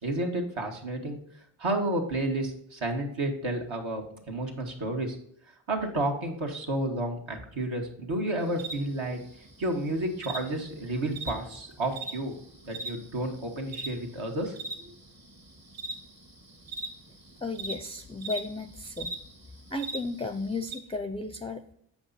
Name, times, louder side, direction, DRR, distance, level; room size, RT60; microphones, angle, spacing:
voice 1, 0.0-1.2 1.6-5.2 5.7-9.2 9.6-12.3 12.6-14.9, right 1 dB, 70° right, 1 dB, 1.7 m, -31 dB
sound 1, 8.4-20.8, right 2 dB, 45° right, 1.6 m, -42 dB
voice 2, 17.4-19.2 19.7-21.7, left 2 dB, 10° left, 8 dB, 0.5 m, -34 dB
7.3 x 5.2 x 4.0 m, 0.69 s
cardioid pair, 45°, 49 cm